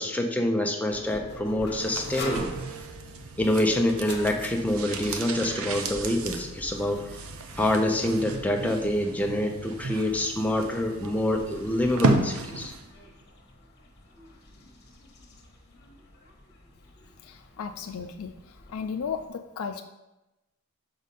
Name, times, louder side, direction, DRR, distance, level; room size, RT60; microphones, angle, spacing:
voice 1, 0.0-2.5 3.4-7.0 7.6-12.7, left 1 dB, 5° left, 3 dB, 0.6 m, -26 dB
sound 1, 0.9-19.3, left 1 dB, 50° left, 1.1 m, -45 dB
sound 2, 1.7-12.9 13.2-13.3, right 3 dB, 80° right, 0.7 m, -33 dB
voice 2, 17.2-19.8, left 6 dB, 85° left, 7 dB, 0.4 m, -35 dB
6.3 x 5.0 x 4.2 m, 0.98 s
head